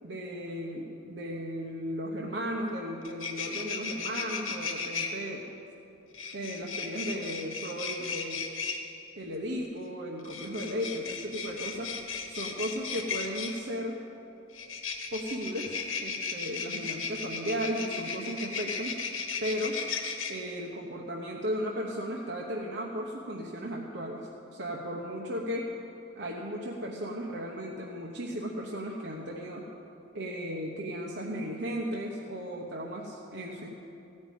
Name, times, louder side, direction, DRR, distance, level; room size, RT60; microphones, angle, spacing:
voice 1, 0.0-5.4 6.3-8.5 9.2-12.0 12.3-14.0 15.1-19.0 19.4-19.8 20.3-25.7 26.2-29.7 30.1-33.7, equal, 60° right, -2 dB, 1.0 m, -35 dB
sound 1, 2.7-2.8 3.0-5.1 6.1-8.8 10.2-13.6 14.5-20.3, left 5 dB, 90° left, 1.3 m, -35 dB
15.5 x 5.4 x 9.2 m, 2.7 s
head